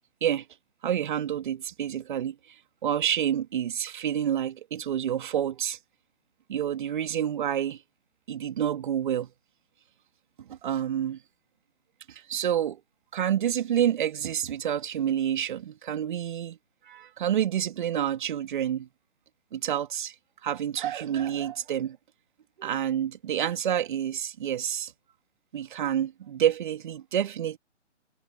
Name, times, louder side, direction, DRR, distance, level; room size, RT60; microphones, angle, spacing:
voice 1, 0.8-2.5 2.8-5.8 6.5-7.8 8.3-9.3 10.4-11.2 12.1-12.8 13.1-16.6 16.8-18.9 19.5-20.1 20.4-22.0 22.6-24.9 25.5-27.6, right 10 dB, 40° right, 2.5 m, -28 dB
figure-of-eight pair, 140°, 36 cm